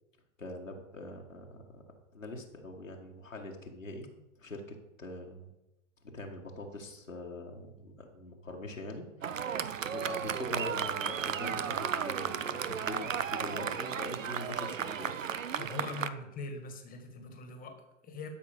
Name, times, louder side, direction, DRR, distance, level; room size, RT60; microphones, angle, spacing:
voice 1, 0.4-1.5 1.7-1.8 2.1-4.1 4.4-5.5 6.1-15.3, left 2 dB, 85° left, 1 dB, 1.7 m, -43 dB
Fireworks, 9.2-16.1, right 8 dB, 80° right, 0.7 m, -34 dB
voice 2, 15.6-18.3, left 3 dB, 20° left, 5 dB, 1.8 m, -42 dB
12.5 x 6.0 x 5.2 m, 0.96 s
figure-of-eight pair, 100°, 38 cm